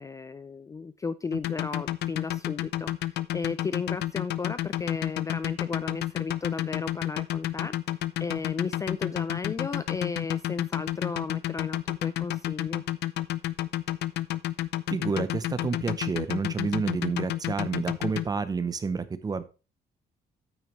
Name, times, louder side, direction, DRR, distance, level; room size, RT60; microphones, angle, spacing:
voice 1, 0.0-2.9 3.3-7.7 8.2-12.8, left 4 dB, 20° left, 0.4 m, -34 dB
sound 1, 1.3-18.3, left 14 dB, 80° left, 0.6 m, -30 dB
voice 2, 14.9-19.4, right 4 dB, 20° right, 0.7 m, -29 dB
9.2 x 8.8 x 3.1 m
cardioid pair, 170°, 17 cm